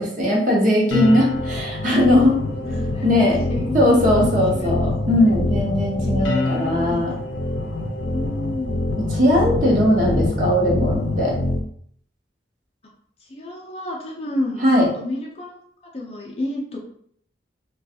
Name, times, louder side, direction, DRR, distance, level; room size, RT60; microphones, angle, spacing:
voice 1, 0.0-2.4 3.0-3.4 3.7-7.1 9.1-11.3 14.6-14.9, left 1 dB, 45° right, -3 dB, 0.8 m, -19 dB
sound 1, 0.9-11.6, left 2 dB, 85° left, 0.5 m, -25 dB
voice 2, 2.6-3.8 4.5-4.9 6.4-7.5 8.0-8.7 13.2-14.7 14.9-15.6 15.9-16.8, left 1 dB, 35° left, -1 dB, 0.5 m, -30 dB
3.1 x 2.3 x 2.7 m, 0.64 s
head